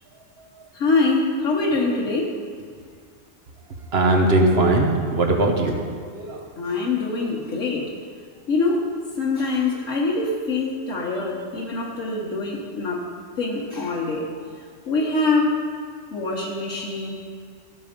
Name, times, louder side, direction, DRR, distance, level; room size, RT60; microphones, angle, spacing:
voice 1, 0.7-2.3 6.6-7.8 8.5-8.8 9.2-13.0 13.4-14.2 14.9-15.5 16.1-17.1, left 3 dB, 80° left, -3 dB, 1.5 m, -24 dB
voice 2, 3.9-5.8 6.1-6.5, right 2 dB, 55° right, 2 dB, 1.3 m, -19 dB
14.5 x 5.4 x 5.1 m, 2.1 s
omnidirectional pair, 1.3 m